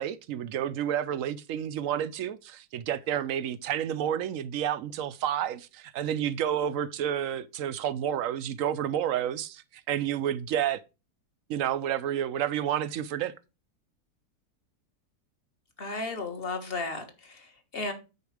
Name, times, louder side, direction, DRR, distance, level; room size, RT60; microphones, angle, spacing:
voice 1, 0.0-10.8 11.5-13.3, right 10 dB, 70° right, 0.8 m, -30 dB
voice 2, 15.8-17.9, left 3 dB, 40° left, 1.7 m, -34 dB
9.5 x 4.5 x 4.9 m
omnidirectional pair, 1.7 m